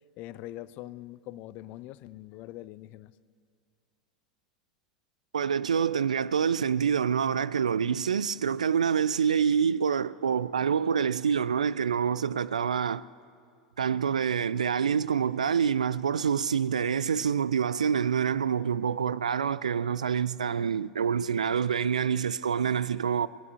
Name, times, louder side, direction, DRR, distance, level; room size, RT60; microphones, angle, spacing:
voice 1, 0.2-3.1, left 15 dB, 45° left, 0.4 m, -43 dB
voice 2, 5.3-13.0 13.8-23.3, right 7 dB, 75° right, 0.3 m, -26 dB
20.0 x 9.5 x 6.8 m
figure-of-eight pair, 80°, 4 cm